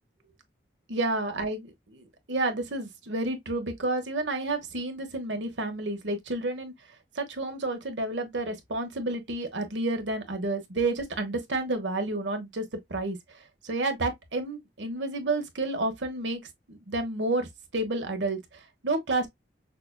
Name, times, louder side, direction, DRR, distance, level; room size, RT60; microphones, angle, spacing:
voice 1, 0.9-6.7 7.1-13.2 13.6-16.4 16.7-17.5 17.7-19.3, right 2 dB, 85° right, 1.2 m, -30 dB
5.8 x 2.3 x 2.2 m
head